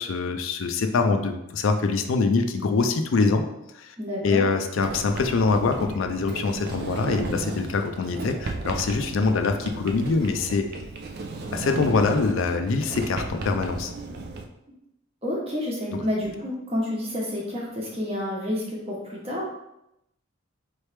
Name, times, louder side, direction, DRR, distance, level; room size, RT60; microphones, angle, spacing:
voice 1, 0.0-3.4 3.7-4.0 4.2-10.7 11.5-13.9 15.9-16.0, left 4 dB, 75° left, 6 dB, 0.4 m, -24 dB
voice 2, 4.0-4.5 15.2-19.5, left 1 dB, 30° right, -3 dB, 1.0 m, -29 dB
Sliding door, 4.8-14.4, right 3 dB, 50° right, 0.4 m, -35 dB
4.1 x 3.1 x 3.3 m, 0.85 s
head